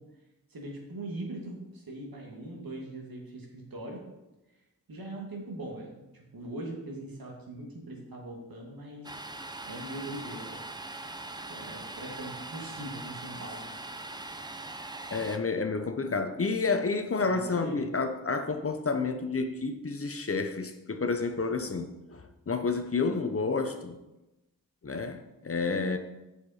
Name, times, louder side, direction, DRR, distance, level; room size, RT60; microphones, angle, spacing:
voice 1, 0.5-4.0 4.9-9.2 9.7-10.6 11.5-13.6 17.2-17.8, right 1 dB, 70° right, 2.2 m, -41 dB
Domestic sounds home sounds, 9.0-15.4, right 2 dB, 10° right, 0.6 m, -41 dB
voice 2, 15.1-24.0 24.8-26.0, left 4 dB, 40° left, 0.7 m, -30 dB
7.7 x 6.7 x 4.2 m
wide cardioid pair, 70°, 37 cm